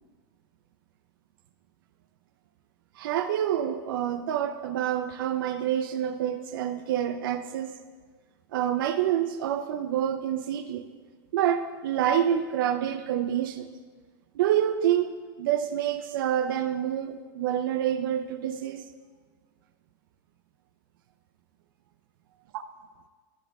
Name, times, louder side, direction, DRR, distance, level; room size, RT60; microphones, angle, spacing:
voice 1, 3.0-7.8 8.5-10.8 11.3-13.7 14.3-18.9 22.5-22.6, right 10 dB, 75° right, 9 dB, 0.5 m, -27 dB
10.5 x 10.0 x 3.4 m, 1.5 s
supercardioid pair, 175°, 11 cm